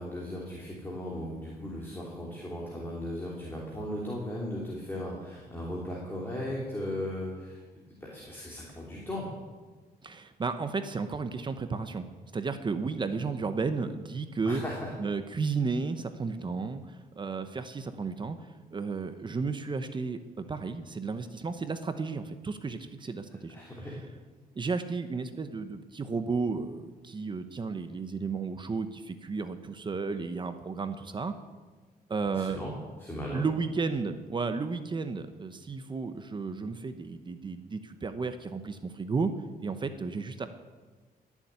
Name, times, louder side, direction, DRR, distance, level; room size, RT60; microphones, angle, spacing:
voice 1, 0.0-7.6 8.0-9.3 14.5-14.9 23.5-24.0 32.3-32.7 33.0-33.4, left 1 dB, 15° left, -4 dB, 3.2 m, -37 dB
voice 2, 10.0-14.6 15.0-24.0 24.5-31.3 32.1-32.6 33.3-39.3 39.6-40.5, right 4 dB, 30° right, 9 dB, 0.9 m, -33 dB
17.5 x 7.4 x 9.5 m, 1.3 s
cardioid pair, 125°, 16 cm